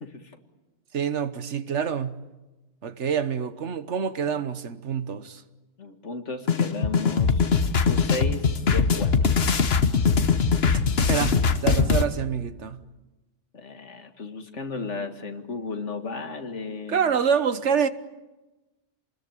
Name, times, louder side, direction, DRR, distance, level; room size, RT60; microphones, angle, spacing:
voice 1, 0.0-0.3 5.8-9.3 13.5-17.0, left 3 dB, 80° left, 2.2 m, -34 dB
voice 2, 0.9-2.2 2.8-5.4 11.1-12.8 16.9-17.9, right 7 dB, 75° right, 1.4 m, -26 dB
sound 1, 6.5-12.0, left 5 dB, 60° left, 1.4 m, -21 dB
28.5 x 20.5 x 9.1 m
omnidirectional pair, 1.2 m